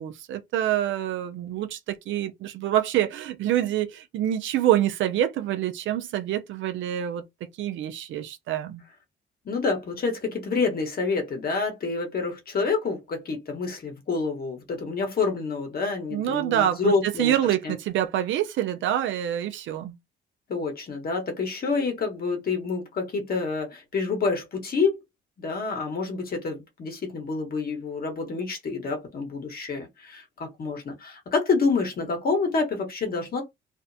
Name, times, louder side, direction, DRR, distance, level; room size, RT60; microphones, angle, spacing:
voice 1, 0.0-7.2 7.6-8.8 16.1-20.0, right 11 dB, 75° right, 0.5 m, -26 dB
voice 2, 9.4-17.3 17.6-17.7 20.5-25.0 25.4-33.4, left 4 dB, 50° left, 1.1 m, -28 dB
2.5 x 2.1 x 2.6 m
cardioid pair, 90°, 20 cm